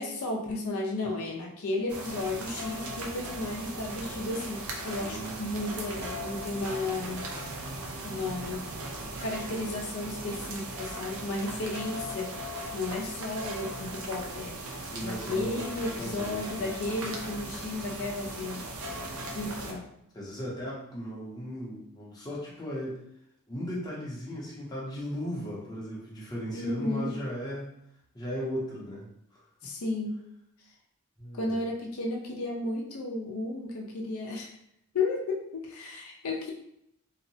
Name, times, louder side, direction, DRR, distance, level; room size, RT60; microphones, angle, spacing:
voice 1, 0.0-7.3 8.0-8.7 9.2-12.4 12.7-14.6 15.0-18.7 19.3-19.9 26.5-27.1 29.6-30.2 31.3-34.5 34.9-36.5, left 2 dB, 75° left, -1 dB, 0.5 m, -33 dB
sound 1, 1.9-19.7, right 1 dB, 75° right, 0.5 m, -38 dB
voice 2, 4.8-5.4 14.8-15.7 16.0-16.7 20.1-23.0 23.5-27.7 28.1-29.7 31.2-31.6, equal, 15° left, -6 dB, 0.6 m, -37 dB
2.7 x 2.0 x 2.7 m, 0.75 s
head